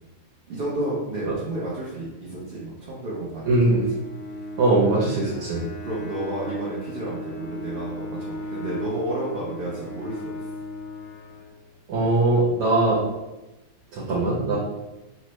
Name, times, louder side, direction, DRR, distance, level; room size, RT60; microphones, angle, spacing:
voice 1, 0.5-3.8 5.8-10.4, right 1 dB, 45° right, -8 dB, 0.9 m, -31 dB
voice 2, 3.5-3.8 4.6-5.6 11.9-13.0 13.9-14.6, right 2 dB, 90° right, -6 dB, 1.3 m, -21 dB
Bowed string instrument, 3.7-11.9, left 1 dB, 70° left, 0.8 m, -37 dB
4.2 x 2.2 x 3.0 m, 1.0 s
omnidirectional pair, 1.5 m